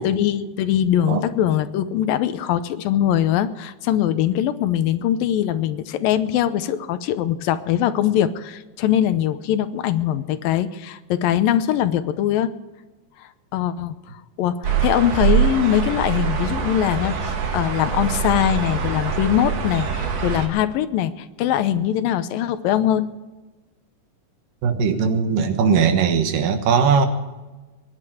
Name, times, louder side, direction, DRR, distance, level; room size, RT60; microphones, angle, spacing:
voice 1, 0.0-12.5 13.2-14.0 14.4-23.1, left 11 dB, 90° left, 12 dB, 2.6 m, -22 dB
sound 1, 14.6-20.5, right 7 dB, 50° right, 2.8 m, -24 dB
voice 2, 24.6-27.1, right 6 dB, 75° right, 7 dB, 3.0 m, -19 dB
21.5 x 11.0 x 5.0 m, 1.2 s
omnidirectional pair, 4.0 m